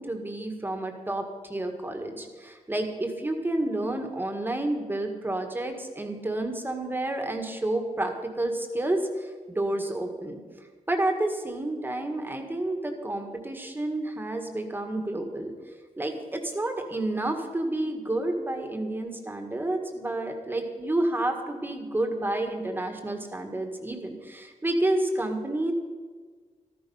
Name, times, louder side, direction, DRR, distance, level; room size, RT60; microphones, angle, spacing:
voice 1, 0.0-10.4 10.9-15.5 16.0-25.7, right 1 dB, 15° right, 4 dB, 1.7 m, -30 dB
14.0 x 14.0 x 5.6 m, 1.5 s
wide cardioid pair, 150°, 13 cm